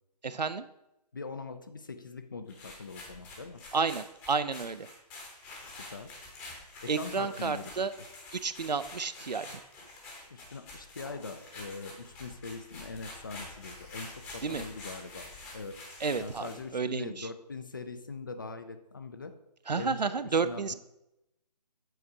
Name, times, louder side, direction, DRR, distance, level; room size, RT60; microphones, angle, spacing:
voice 1, 0.2-0.6 3.7-4.9 6.9-7.9 8.3-9.6 14.4-14.6 16.0-17.3 19.7-20.7, right 5 dB, 75° right, 13 dB, 0.5 m, -31 dB
voice 2, 1.1-3.6 5.9-6.1 6.8-7.7 10.3-15.8 16.2-19.3 19.8-20.7, left 4 dB, 30° left, 9 dB, 0.4 m, -42 dB
sound 1, 2.5-16.7, left 2 dB, 10° left, 0.8 m, -47 dB
7.9 x 4.2 x 4.8 m, 0.88 s
figure-of-eight pair, 145°, 21 cm